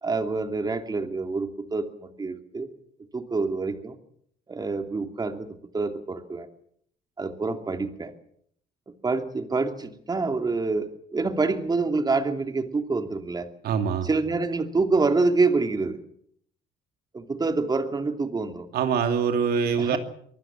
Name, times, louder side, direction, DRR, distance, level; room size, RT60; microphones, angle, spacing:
voice 1, 0.0-2.7 3.1-4.0 4.5-6.5 7.2-8.1 9.0-13.5 14.0-16.0 17.1-18.7 19.8-20.0, right 3 dB, 25° right, 6 dB, 2.7 m, -26 dB
voice 2, 13.6-14.1 18.7-20.0, right 6 dB, 65° right, 7 dB, 2.8 m, -24 dB
24.5 x 19.5 x 7.4 m, 0.68 s
cardioid pair, 110°, 17 cm